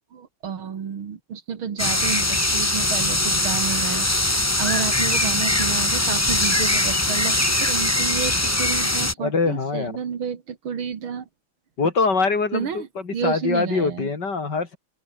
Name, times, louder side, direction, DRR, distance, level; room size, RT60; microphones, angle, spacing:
voice 1, 0.1-11.3 12.5-14.1, right 7 dB, 70° right, 2.7 m, -30 dB
sound 1, 1.8-9.1, left 1 dB, 10° left, 1.0 m, -21 dB
voice 2, 9.2-10.0 11.8-14.8, left 4 dB, 50° left, 3.6 m, -23 dB
open air
omnidirectional pair, 2.4 m